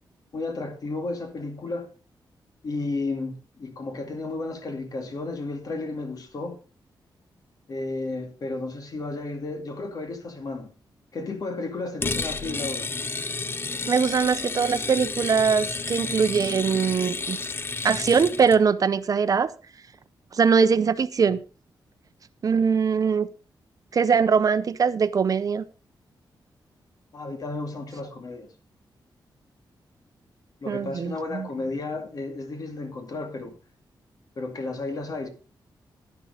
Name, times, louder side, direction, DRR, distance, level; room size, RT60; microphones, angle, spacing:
voice 1, 0.3-1.9 2.6-6.6 7.7-10.7 11.1-12.9 27.1-28.5 30.6-33.6 34.4-35.3, left 3 dB, 50° left, 2.2 m, -33 dB
sound 1, 12.0-18.6, left 3 dB, 30° left, 0.7 m, -31 dB
voice 2, 13.9-17.4 17.8-19.5 20.3-21.4 22.4-23.3 23.9-25.6 30.7-31.5, right 6 dB, 45° right, 0.7 m, -22 dB
11.0 x 10.5 x 3.8 m
wide cardioid pair, 140°, 8 cm